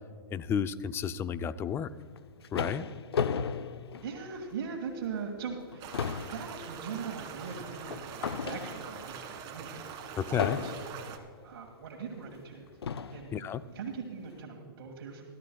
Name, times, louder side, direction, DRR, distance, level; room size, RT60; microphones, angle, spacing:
voice 1, 0.3-1.9 2.5-2.9 10.2-10.6 13.3-13.6, left 8 dB, 20° left, 14 dB, 0.4 m, -32 dB
sound 1, 2.0-4.7 5.1-5.3 5.6-9.1 10.4-11.1 12.0-12.1 12.8-13.3, left 6 dB, 90° left, 0.6 m, -35 dB
voice 2, 4.0-6.0 6.3-10.7 11.4-12.7 13.1-13.4 13.7-15.2, right 6 dB, 65° right, 0 dB, 1.9 m, -40 dB
sound 2, 5.8-11.2, right 7 dB, 35° right, 1.8 m, -43 dB
23.0 x 12.5 x 2.3 m, 2.1 s
hypercardioid pair, 130°, 13 cm